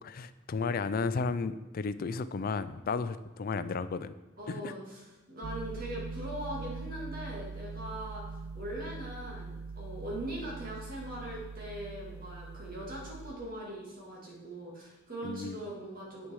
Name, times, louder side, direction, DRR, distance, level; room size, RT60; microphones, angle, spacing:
voice 1, 0.0-4.1 4.5-4.7 15.2-15.6, left 4 dB, 45° left, 13 dB, 0.4 m, -33 dB
voice 2, 4.4-16.3, right 1 dB, 45° right, -4 dB, 2.6 m, -41 dB
sound 1, 5.4-13.4, right 4 dB, 90° right, 0.5 m, -42 dB
8.3 x 6.4 x 4.7 m, 1.1 s
head